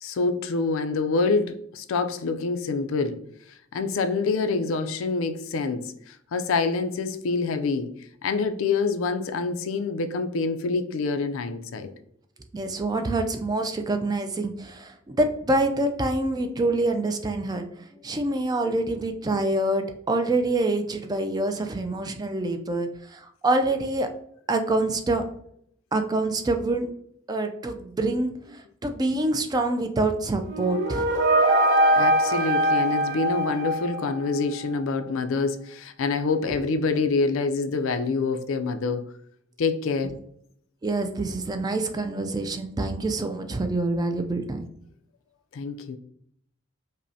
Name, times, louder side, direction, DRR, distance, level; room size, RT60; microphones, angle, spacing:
voice 1, 0.0-3.2 3.7-7.9 8.2-11.9 32.0-39.0 39.6-40.1 45.5-46.0, left 4 dB, 75° left, 8 dB, 0.4 m, -26 dB
voice 2, 12.5-17.7 18.0-24.1 24.5-25.2 25.9-26.9 27.3-31.1 40.8-44.7, right 2 dB, 20° right, 6 dB, 0.3 m, -26 dB
sound 1, 30.4-34.4, right 1 dB, 60° right, 0.8 m, -22 dB
5.2 x 2.1 x 2.7 m, 0.67 s
head